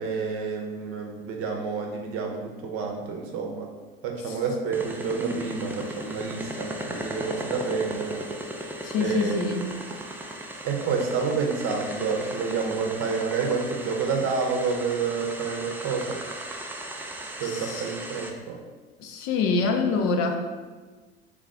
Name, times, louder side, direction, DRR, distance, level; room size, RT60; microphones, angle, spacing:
voice 1, 0.0-3.7 4.0-8.2 9.0-9.4 10.6-16.2 17.4-18.6, right 5 dB, 50° right, 1 dB, 0.7 m, -29 dB
sound 1, 4.7-18.3, right 1 dB, 5° right, 0.3 m, -37 dB
voice 2, 8.8-9.7 17.4-17.8 19.0-20.4, left 4 dB, 50° left, 4 dB, 0.5 m, -26 dB
3.4 x 2.3 x 3.7 m, 1.4 s
hypercardioid pair, 70°, 29 cm